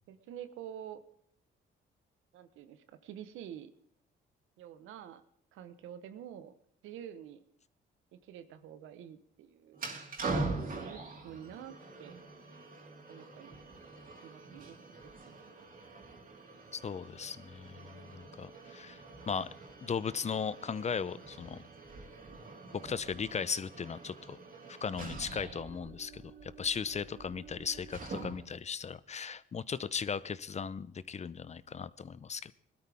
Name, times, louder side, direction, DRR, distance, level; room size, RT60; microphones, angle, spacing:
voice 1, 0.1-1.0 2.3-3.7 4.6-5.2 5.5-6.5 6.8-7.4 8.1-9.9 10.3-12.2 13.1-13.6 14.2-14.8, right 10 dB, 90° right, 1.1 m, -48 dB
sound 1, 9.7-28.6, right 3 dB, 45° right, 3.4 m, -44 dB
voice 2, 16.7-19.5 19.8-21.6 22.7-24.4 24.7-32.5, left 6 dB, 35° left, 0.7 m, -37 dB
20.0 x 13.0 x 3.5 m
cardioid pair, 90°, 20 cm